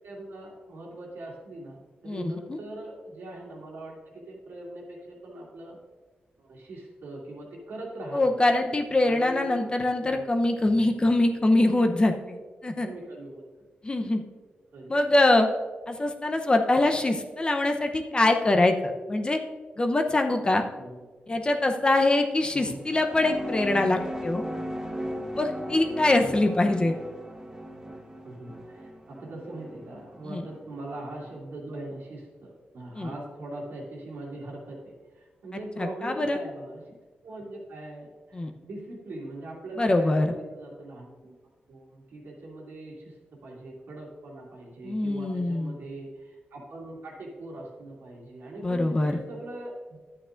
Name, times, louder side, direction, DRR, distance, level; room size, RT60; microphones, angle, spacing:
voice 1, 0.0-5.8 6.4-8.3 9.0-9.7 10.0-10.2 12.8-13.4 14.7-14.9 20.8-21.0 22.5-22.8 26.2-26.4 28.2-36.9 37.2-41.4 41.7-43.2 43.4-50.0, right 1 dB, 90° right, -3 dB, 2.6 m, -41 dB
voice 2, 2.1-2.6 8.1-12.9 13.8-14.2 14.9-15.5 15.9-19.4 19.8-20.6 21.3-24.4 25.3-26.9 30.3-30.4 33.0-33.1 35.8-36.4 38.3-38.5 39.8-40.3 44.8-45.7 48.6-49.2, left 2 dB, 25° left, 4 dB, 0.8 m, -24 dB
sound 1, 22.7-31.4, equal, 15° right, 1.1 m, -38 dB
11.0 x 8.8 x 2.6 m, 1.3 s
cardioid pair, 95°, 4 cm